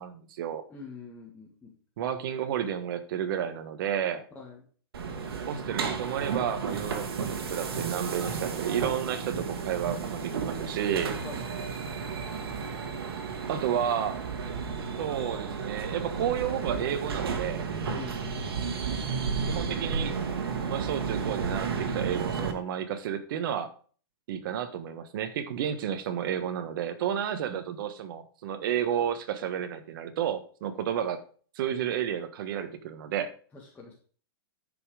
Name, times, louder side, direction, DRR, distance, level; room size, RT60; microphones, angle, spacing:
voice 1, 0.0-0.6 2.0-4.3 5.5-11.1 13.5-14.2 15.0-17.6 19.5-20.2 20.6-23.7 24.3-31.2 31.5-33.3, right 9 dB, 60° right, 9 dB, 1.4 m, -31 dB
voice 2, 0.7-1.7 4.4-4.6 11.2-11.5 17.9-18.8 33.5-33.9, left 4 dB, 10° left, -3 dB, 1.9 m, -45 dB
sound 1, 4.9-22.5, right 5 dB, 85° right, 2.0 m, -33 dB
11.0 x 5.4 x 5.0 m, 0.43 s
hypercardioid pair, 140°, 13 cm